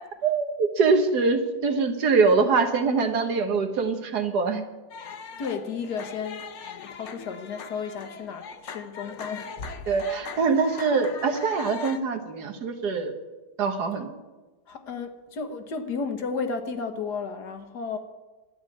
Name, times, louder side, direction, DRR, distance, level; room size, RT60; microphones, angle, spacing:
voice 1, 0.2-4.6 9.9-13.1 13.6-14.1, right 4 dB, 75° right, 6 dB, 1.8 m, -23 dB
sound 1, 4.9-12.0, left 6 dB, 55° left, 1.1 m, -40 dB
voice 2, 5.4-6.5 6.8-9.7 14.7-18.0, left 5 dB, 85° left, 7 dB, 1.8 m, -33 dB
12.5 x 9.4 x 8.5 m, 1.2 s
omnidirectional pair, 1.7 m